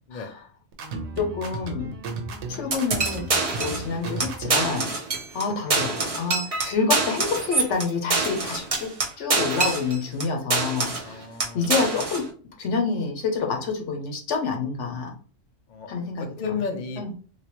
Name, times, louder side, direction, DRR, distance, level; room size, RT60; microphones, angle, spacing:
voice 1, 0.1-0.4 1.2-1.9 2.5-3.2 3.6-4.9 5.3-11.2 11.5-12.3 12.6-15.1 15.9-16.3 17.0-17.1, left 5 dB, 70° left, 2 dB, 1.1 m, -28 dB
sound 1, 0.7-4.8, right 3 dB, 70° right, 1.0 m, -34 dB
sound 2, 2.7-3.9 4.2-4.3 4.5-5.4 5.7-10.2 10.5-11.1 11.4-12.2, right 3 dB, 35° right, 0.7 m, -25 dB
voice 2, 11.0-11.7 15.7-15.9 16.4-17.1, left 5 dB, 50° left, 4 dB, 0.6 m, -32 dB
3.3 x 2.8 x 3.0 m, 0.42 s
omnidirectional pair, 1.3 m